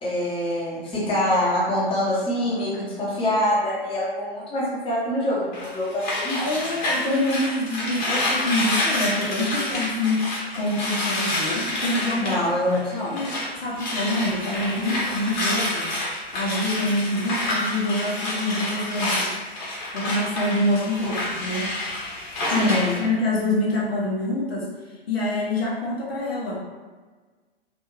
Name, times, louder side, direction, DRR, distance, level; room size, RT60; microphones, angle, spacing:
voice 1, 0.0-6.4 12.2-13.1 22.6-23.0, left 1 dB, 15° left, -7 dB, 0.9 m, -25 dB
sound 1, 5.5-13.5 13.7-23.0, left 1 dB, 50° left, 1.0 m, -28 dB
voice 2, 6.4-12.4 13.1-15.9 16.3-19.4 19.9-21.7 22.5-22.7 23.0-24.7 25.1-26.6, left 1 dB, 70° left, -4 dB, 0.9 m, -26 dB
2.6 x 2.4 x 2.9 m, 1.4 s
figure-of-eight pair, 100°, 31 cm